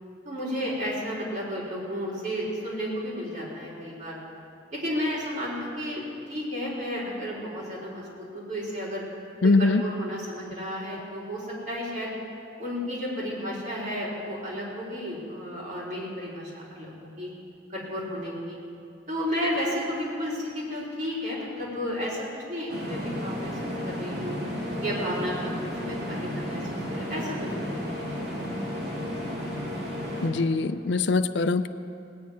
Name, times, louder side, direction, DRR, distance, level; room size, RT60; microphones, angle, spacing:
voice 1, 0.2-4.2 4.7-9.0 9.4-9.5 9.8-12.2 12.6-17.3 17.7-18.6 19.1-23.6 23.8-24.4 24.8-26.6 26.9-28.1, equal, 45° right, -6 dB, 4.4 m, -32 dB
voice 2, 9.4-9.8 30.2-31.7, left 3 dB, 70° left, 11 dB, 0.5 m, -22 dB
sound 1, 22.7-30.3, equal, 65° right, 2.9 m, -33 dB
19.0 x 6.8 x 9.5 m, 2.5 s
head